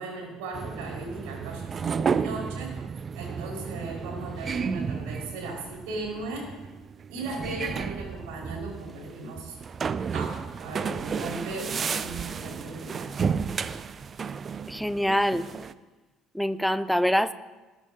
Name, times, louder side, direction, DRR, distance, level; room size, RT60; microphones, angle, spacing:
voice 1, 0.0-2.8 3.1-6.5 7.1-9.6 10.1-13.1, right 2 dB, 65° right, -1 dB, 4.8 m, -37 dB
sound 1, 0.5-15.7, right 6 dB, 35° right, 0.5 m, -32 dB
voice 2, 14.7-15.4 16.3-17.3, equal, ahead, 15 dB, 0.7 m, -24 dB
20.5 x 12.5 x 2.7 m, 1.2 s
figure-of-eight pair, 55°, 0 cm